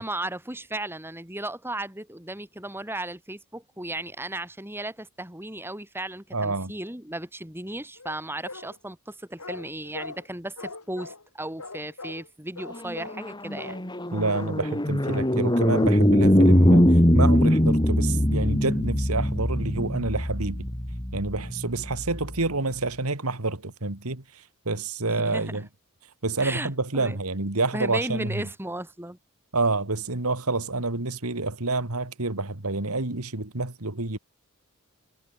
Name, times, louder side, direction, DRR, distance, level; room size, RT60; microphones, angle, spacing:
voice 1, 0.0-13.8 25.1-25.6 26.4-27.2 27.7-29.2, right 1 dB, 10° right, 4.7 m, -35 dB
voice 2, 6.3-6.7 14.1-20.7 21.1-25.7 26.2-28.5 29.5-34.2, right 3 dB, 80° right, 2.4 m, -28 dB
sound 1, 8.0-8.8 9.4-10.3 10.6-11.3 11.6-12.3 12.6-13.3 13.6-13.9 14.3-14.7 15.1-15.4 15.7-16.1, left 3 dB, 85° left, 7.7 m, -41 dB
sound 2, 12.9-22.4, equal, 20° left, 2.8 m, -22 dB
head